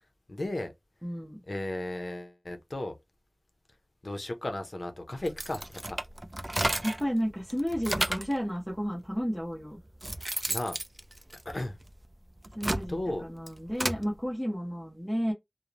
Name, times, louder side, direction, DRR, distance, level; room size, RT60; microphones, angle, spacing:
voice 1, 0.3-0.7 1.5-2.9 4.0-6.0 10.5-10.8 11.5-11.8 12.9-13.3, left 1 dB, 70° left, 0.5 m, -35 dB
voice 2, 1.0-1.4 6.8-9.8 12.6-15.3, equal, 5° left, 0.7 m, -32 dB
sound 1, 5.2-7.1 7.5-8.4 9.2-9.3 9.8-11.9 12.4-14.0, right 1 dB, 35° right, 0.4 m, -32 dB
2.8 x 2.0 x 2.4 m
wide cardioid pair, 45°, 0 cm